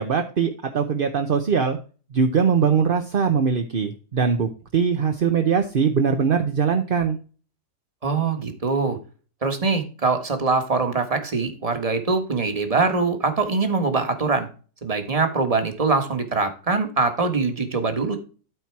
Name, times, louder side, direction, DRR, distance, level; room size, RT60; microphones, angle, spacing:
voice 1, 0.0-1.8 2.1-7.2, right 6 dB, 45° right, 5 dB, 0.8 m, -21 dB
voice 2, 8.0-9.0 9.4-14.5 14.8-18.2, right 4 dB, 25° right, 6 dB, 1.4 m, -23 dB
13.0 x 4.4 x 4.6 m, 0.37 s
omnidirectional pair, 1.7 m